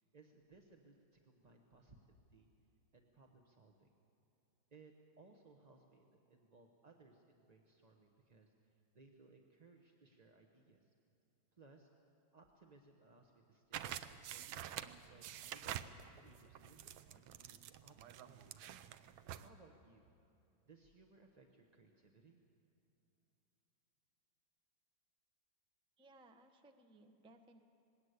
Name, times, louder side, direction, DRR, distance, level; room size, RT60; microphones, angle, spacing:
voice 1, 0.0-2.5 2.9-3.9 4.7-10.9 11.5-11.9 12.3-14.5 15.1-18.7 19.4-20.1 20.6-22.4, right 3 dB, 30° right, 2 dB, 0.8 m, -65 dB
sound 1, 13.7-19.5, right 11 dB, 80° right, 1.5 m, -48 dB
voice 2, 26.0-27.6, right 2 dB, 5° right, 5 dB, 0.5 m, -63 dB
20.5 x 17.5 x 8.1 m, 2.8 s
omnidirectional pair, 2.2 m